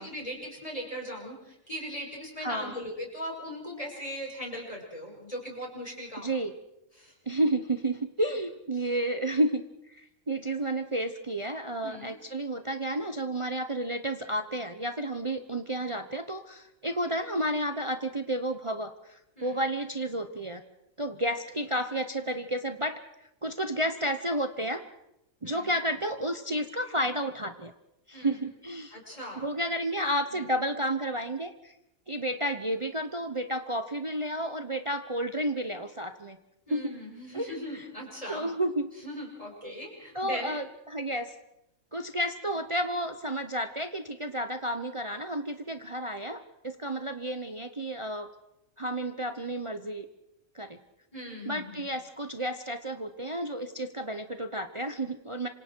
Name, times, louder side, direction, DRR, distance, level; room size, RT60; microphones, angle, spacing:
voice 1, 0.0-6.3 7.0-7.1 11.8-12.2 19.4-19.5 25.4-25.7 28.1-28.4 28.9-29.5 30.3-30.5 36.7-38.5 39.0-40.5 51.1-51.8, equal, 25° left, -1 dB, 5.8 m, -39 dB
voice 2, 2.4-2.7 6.2-6.6 7.3-20.6 21.0-23.0 23.4-24.8 25.4-27.7 28.1-29.0 29.4-31.7 32.1-36.4 36.7-37.0 37.3-37.9 38.3-38.9 39.6-39.8 40.1-41.3 41.9-48.3 48.8-50.0 50.5-50.8 51.4-55.5, right 1 dB, 25° right, 8 dB, 1.0 m, -31 dB
27.0 x 26.0 x 4.7 m, 0.84 s
omnidirectional pair, 1.4 m